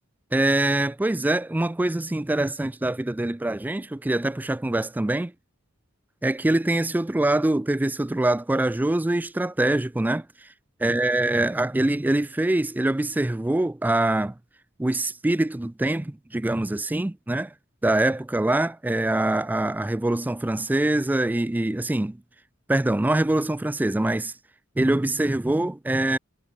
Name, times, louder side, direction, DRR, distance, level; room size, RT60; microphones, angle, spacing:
voice 1, 0.3-5.3 6.2-10.5 10.8-14.4 14.8-17.5 17.8-22.2 22.7-24.3 24.8-26.2, right 1 dB, 10° right, 0.3 m, -24 dB
head